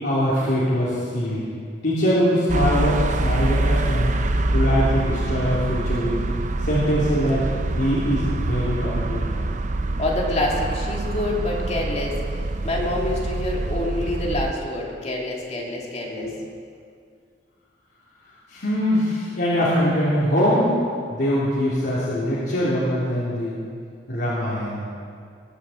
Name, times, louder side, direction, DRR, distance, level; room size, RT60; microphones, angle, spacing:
voice 1, 0.0-1.4 1.8-4.1 4.5-6.2 6.6-7.4 7.8-9.5 15.6-15.7 16.1-16.3 18.5-20.8 21.1-23.6 24.1-24.9, equal, 65° left, -9 dB, 3.1 m, -22 dB
sound 1, 2.5-14.5, right 2 dB, 45° right, 0.7 m, -25 dB
voice 2, 10.0-12.2 12.6-16.3, left 1 dB, 35° left, -2 dB, 2.5 m, -26 dB
21.0 x 7.0 x 7.7 m, 2.2 s
head